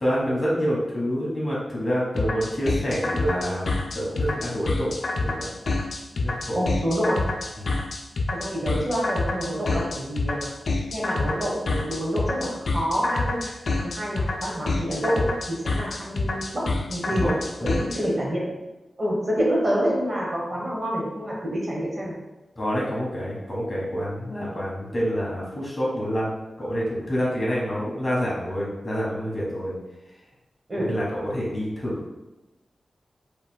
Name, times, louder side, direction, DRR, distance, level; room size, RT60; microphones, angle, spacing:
voice 1, 0.0-5.5 6.2-6.6 7.6-7.7 17.1-17.3 17.6-17.8 22.6-29.7 30.7-32.0, equal, 25° left, -5 dB, 1.3 m, -27 dB
sound 1, 2.2-18.0, left 2 dB, 65° left, 0.5 m, -27 dB
voice 2, 6.5-7.2 8.4-10.5 10.9-13.5 13.8-17.3 17.6-18.4 19.0-22.1 30.7-30.9, equal, 35° right, -4 dB, 1.1 m, -27 dB
5.2 x 3.2 x 2.2 m, 1.0 s
wide cardioid pair, 130°, 0 cm